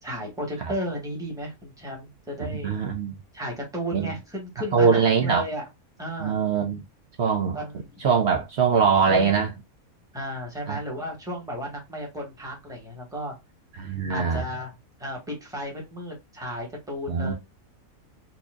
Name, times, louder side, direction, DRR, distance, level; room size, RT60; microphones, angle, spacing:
voice 1, 0.0-2.8 3.3-5.7 6.0-6.4 7.5-8.0 9.1-9.3 10.1-13.3 14.1-14.7 15.0-17.3, equal, 5° right, 1.3 m, -34 dB
voice 2, 2.6-3.2 3.9-4.1 4.7-5.4 6.2-6.8 7.2-7.6 8.0-9.5 10.7-10.8 13.8-14.4 17.1-17.3, right 6 dB, 55° right, 0.8 m, -22 dB
4.2 x 2.8 x 2.4 m
omnidirectional pair, 1.5 m